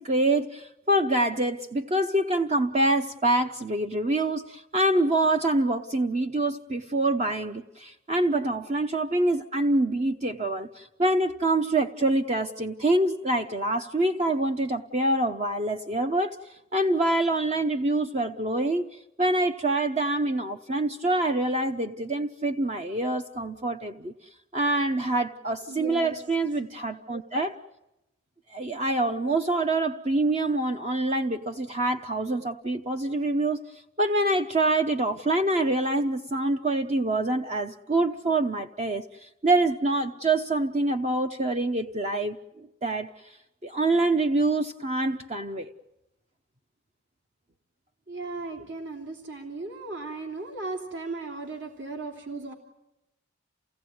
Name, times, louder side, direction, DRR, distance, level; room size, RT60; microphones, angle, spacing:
voice 1, 0.0-16.4 16.7-18.9 19.2-24.1 24.5-27.5 28.5-33.6 34.0-43.1 43.6-45.7, right 2 dB, 35° right, 6 dB, 0.8 m, -25 dB
voice 2, 25.7-26.2 48.1-52.5, right 3 dB, 60° right, 2 dB, 3.1 m, -36 dB
29.0 x 17.5 x 9.4 m, 0.93 s
head